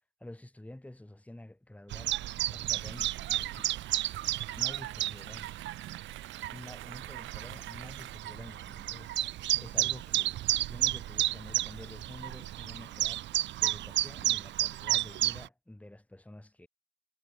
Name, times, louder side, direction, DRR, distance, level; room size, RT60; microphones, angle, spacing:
voice 1, 0.2-2.1 2.4-3.7 4.6-5.5 6.5-13.3 13.6-16.7, left 1 dB, 5° left, 3.9 m, -49 dB
Chirp tweet, 1.9-15.5, right 14 dB, 65° right, 0.5 m, -32 dB
sound 1, 2.7-8.2, right 15 dB, 85° right, 1.1 m, -49 dB
cardioid pair, 90°, 20 cm